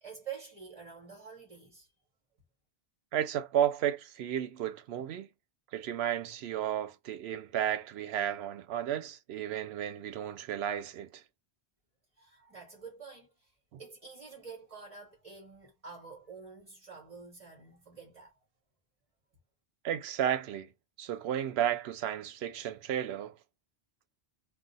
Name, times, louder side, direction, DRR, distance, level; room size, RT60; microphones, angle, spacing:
voice 1, 0.0-1.9 12.2-18.4, right 6 dB, 35° right, 1.1 m, -48 dB
voice 2, 3.1-5.3 5.7-11.2 13.7-13.8 19.8-20.7 21.0-23.3, right 10 dB, 85° right, 0.8 m, -33 dB
2.4 x 2.0 x 3.9 m
omnidirectional pair, 1.0 m